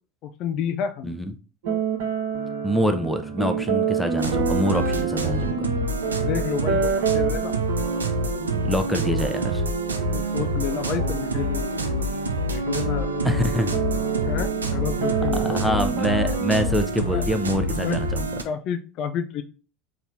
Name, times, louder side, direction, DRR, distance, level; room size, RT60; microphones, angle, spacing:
voice 1, 0.2-1.2 6.1-7.5 10.1-12.2 12.5-13.1 14.3-15.6 17.0-17.2 17.7-18.0 18.4-19.4, left 8 dB, 50° left, 8 dB, 0.4 m, -30 dB
sound 1, 1.6-16.7, right 6 dB, 65° right, 0.9 m, -28 dB
voice 2, 2.6-5.7 8.6-9.6 13.2-13.7 15.3-18.3, equal, ahead, 6 dB, 0.7 m, -25 dB
sound 2, 4.2-18.4, right 1 dB, 85° right, 0.5 m, -27 dB
4.2 x 2.8 x 3.5 m, 0.35 s
figure-of-eight pair, 75°, 0 cm